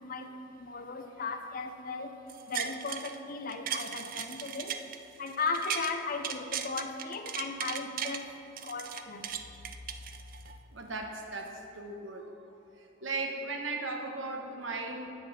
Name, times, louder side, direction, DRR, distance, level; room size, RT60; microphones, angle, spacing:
voice 1, 0.0-2.2 2.5-4.8 5.2-9.3 10.0-10.1, left 4 dB, 45° left, 6 dB, 0.7 m, -37 dB
sound 1, 2.3-3.2 3.5-5.9 6.2-8.2 8.6-10.6 11.0-11.1, right 8 dB, 45° right, 0.4 m, -37 dB
voice 2, 10.7-12.3 13.0-15.1, right 3 dB, 70° right, 2 dB, 1.2 m, -37 dB
8.5 x 7.6 x 5.9 m, 2.9 s
head